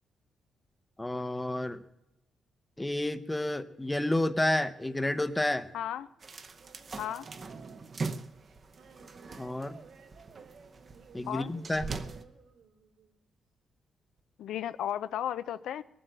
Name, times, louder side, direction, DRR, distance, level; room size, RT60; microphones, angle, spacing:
voice 1, 1.0-1.8 2.8-5.7 9.4-9.8 11.1-11.9, left 1 dB, 10° left, 0.7 m, -30 dB
sound 1, 4.8-13.2 14.2-14.3, right 6 dB, 80° right, 2.9 m, -56 dB
voice 2, 5.7-6.1 7.0-7.3 11.3-11.5 14.4-15.8, left 11 dB, 85° left, 0.5 m, -34 dB
sound 2, 6.2-12.2, right 4 dB, 35° right, 0.8 m, -42 dB
20.0 x 7.8 x 8.0 m
cardioid pair, 130°, 0 cm